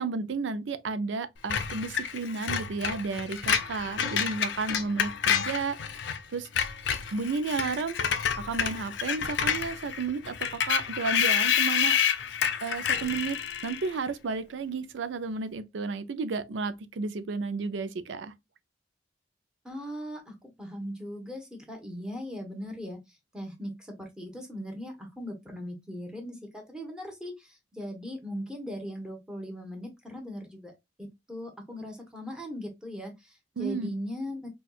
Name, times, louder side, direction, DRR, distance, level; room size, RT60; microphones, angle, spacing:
voice 1, 0.0-6.5 7.1-8.0 8.4-12.0 12.6-18.3 33.6-33.9, right 4 dB, 85° right, 0.4 m, -32 dB
Screech, 1.5-6.2 6.5-13.9, left 8 dB, 75° left, 0.5 m, -29 dB
voice 2, 19.6-30.7 31.0-34.5, equal, 5° right, 0.9 m, -39 dB
4.3 x 2.3 x 2.3 m
head